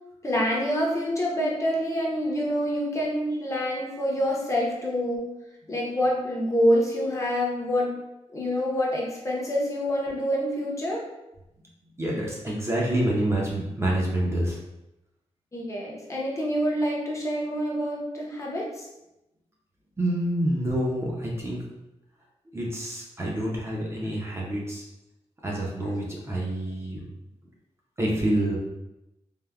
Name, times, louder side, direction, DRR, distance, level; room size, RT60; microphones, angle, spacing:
voice 1, 0.2-5.3 5.7-8.0 8.3-11.0 15.5-18.9, equal, 25° left, -3 dB, 0.6 m, -26 dB
voice 2, 12.0-14.6 20.0-21.6 22.5-24.8 25.4-27.0 28.0-28.6, right 1 dB, 25° right, -3 dB, 0.5 m, -27 dB
3.4 x 2.0 x 2.2 m, 0.92 s
wide cardioid pair, 140°, 12 cm